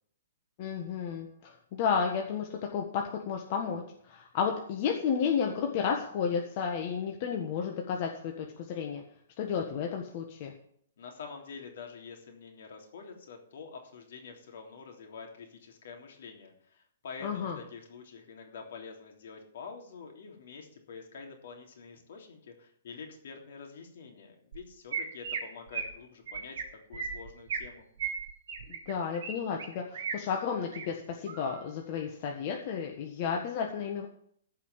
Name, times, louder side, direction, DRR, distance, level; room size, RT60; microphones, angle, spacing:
voice 1, 0.6-9.0 9.4-10.5 17.2-17.6 28.9-34.1, left 6 dB, 40° left, 1 dB, 1.6 m, -32 dB
voice 2, 11.0-26.6 26.9-27.9, left 5 dB, 65° left, 2 dB, 3.4 m, -47 dB
Chirp tweet, 24.5-24.6 24.9-25.4 25.7-25.9 26.3-26.6 26.9-27.7 28.0-29.3 29.6-30.1 30.6-30.8 31.3-31.6, right 6 dB, 60° right, 3.7 m, -36 dB
15.0 x 5.7 x 7.4 m, 0.65 s
hypercardioid pair, 155°, 0 cm